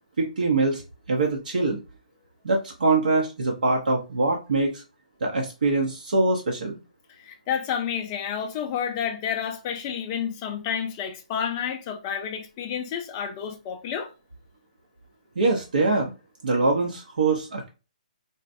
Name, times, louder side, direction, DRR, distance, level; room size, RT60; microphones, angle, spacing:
voice 1, 0.2-0.8 1.1-1.8 2.4-4.8 5.2-6.8 15.4-16.1 16.4-17.7, right 3 dB, 85° right, 0.8 m, -23 dB
voice 2, 7.2-14.1, left 8 dB, 15° left, 0.3 m, -30 dB
3.9 x 2.1 x 2.5 m
hypercardioid pair, 175°, 4 cm